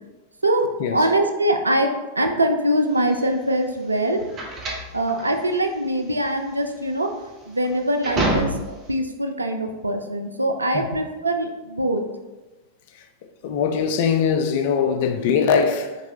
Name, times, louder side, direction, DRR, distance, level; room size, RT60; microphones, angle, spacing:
voice 1, 0.4-1.9 2.2-4.2 4.9-7.1 7.5-8.5 8.9-12.0, right 1 dB, 80° right, 0.4 m, -23 dB
sound 1, 3.0-8.9, right 2 dB, 30° right, 0.9 m, -29 dB
voice 2, 13.4-16.0, left 6 dB, 50° left, 0.4 m, -21 dB
3.9 x 3.5 x 2.7 m
figure-of-eight pair, 90°, 0 cm